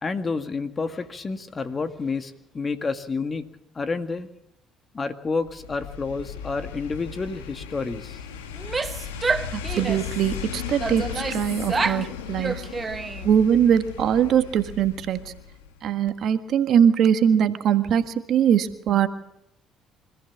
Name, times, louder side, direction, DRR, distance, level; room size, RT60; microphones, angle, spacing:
voice 1, 0.0-3.5 3.8-4.3 4.9-8.2, left 4 dB, 35° left, 9 dB, 2.0 m, -29 dB
sound 1, 5.4-15.8 16.1-16.2, left 8 dB, 90° left, 1.6 m, -36 dB
Female speech woman speaking / Yell, 8.5-10.2 10.8-12.1 12.4-13.4, right 4 dB, 30° right, 1.1 m, -28 dB
voice 2, 9.5-12.6 13.2-15.3 15.8-19.1, right 8 dB, 60° right, 9 dB, 1.6 m, -21 dB
25.5 x 14.5 x 7.4 m, 0.81 s
hypercardioid pair, 60°, 0 cm